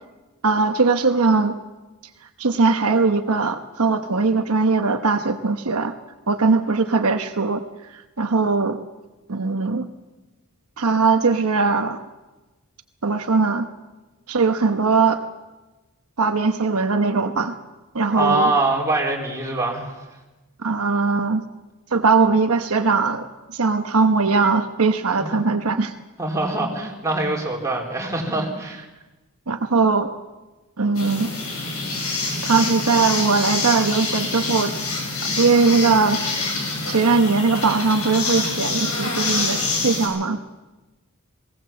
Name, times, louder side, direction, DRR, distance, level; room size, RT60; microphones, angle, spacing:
voice 1, 0.4-1.6 2.4-5.9 6.3-7.6 7.9-8.8 9.3-9.9 10.8-12.0 13.0-13.7 14.3-15.2 16.2-17.6 17.9-18.5 20.6-21.4 21.9-25.9 29.5-30.1 30.8-31.3 32.4-34.7 35.4-36.2 36.9-40.4, right 4 dB, 75° right, 7 dB, 1.0 m, -20 dB
voice 2, 18.2-19.9 25.2-25.4 26.2-28.9, right 2 dB, 15° right, -1 dB, 4.0 m, -23 dB
sound 1, 30.9-40.1, left 3 dB, 75° left, 7.6 m, -26 dB
20.0 x 18.0 x 7.5 m, 1.1 s
head